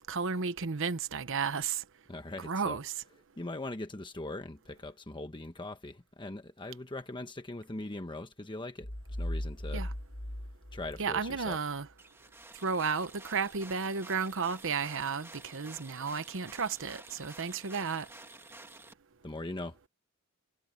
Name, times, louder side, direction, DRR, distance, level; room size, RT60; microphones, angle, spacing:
voice 1, 0.1-1.8 2.4-2.9 9.7-9.9 11.0-11.9 12.6-18.1, right 5 dB, 65° right, 1.0 m, -33 dB
voice 2, 2.1-2.8 3.4-8.9 9.2-9.8 10.7-11.6 19.2-19.8, left 2 dB, 20° left, 1.1 m, -41 dB
sound 1, 8.8-11.5, left 1 dB, 60° left, 2.9 m, -38 dB
sound 2, 12.0-18.9, right 2 dB, 10° right, 1.6 m, -51 dB
head